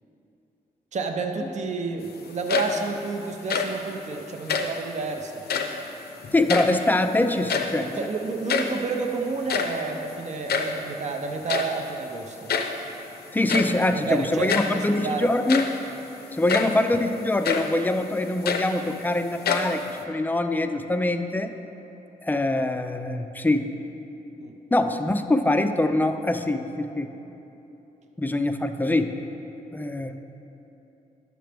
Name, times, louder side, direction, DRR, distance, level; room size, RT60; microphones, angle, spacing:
voice 1, 0.9-5.3 7.9-12.5 13.9-15.3 16.5-16.6 24.4-24.6, right 4 dB, 45° right, 4 dB, 0.5 m, -30 dB
sound 1, 2.3-3.0 3.3-3.9 4.4-4.8 5.4-5.9 6.2-7.1 7.3-7.9 8.2-8.3 8.5-8.8 9.3-10.8 11.5-11.8 12.5-12.9 13.5-13.8 14.5-14.8 15.3-15.9 16.5-16.8 17.4-17.8 18.2-19.1 19.4-20.0, left 5 dB, 85° left, 0.6 m, -27 dB
voice 2, 6.3-8.0 13.3-15.6 16.4-21.5 22.2-23.7 24.7-27.1 28.2-29.2 29.7-30.2, left 2 dB, 10° left, 8 dB, 0.3 m, -24 dB
10.0 x 6.6 x 3.4 m, 3.0 s
wide cardioid pair, 125°, 16 cm